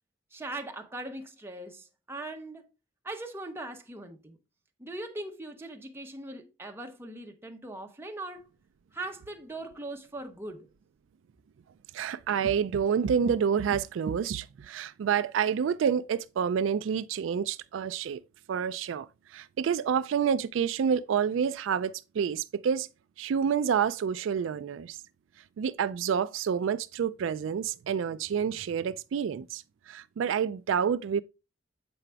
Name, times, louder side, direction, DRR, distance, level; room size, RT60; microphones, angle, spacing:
voice 1, 0.3-2.7 3.0-4.4 4.8-8.5 8.9-10.7, right 2 dB, 10° right, 0.9 m, -40 dB
voice 2, 11.9-18.2 18.5-22.9 23.2-25.0 25.6-31.2, right 7 dB, 75° right, 0.3 m, -28 dB
7.8 x 4.9 x 3.3 m
head